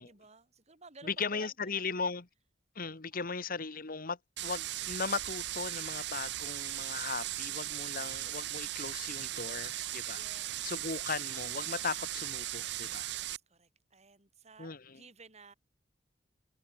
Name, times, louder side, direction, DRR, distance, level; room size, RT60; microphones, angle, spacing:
voice 1, 0.0-2.0 3.1-3.5 10.1-11.1 13.1-15.5, right 3 dB, 35° right, 5.4 m, -56 dB
voice 2, 1.0-2.2 2.7-10.2 10.6-13.1 14.6-14.8, left 5 dB, 50° left, 1.4 m, -37 dB
sound 1, 4.4-13.4, right 15 dB, 65° right, 0.6 m, -38 dB
head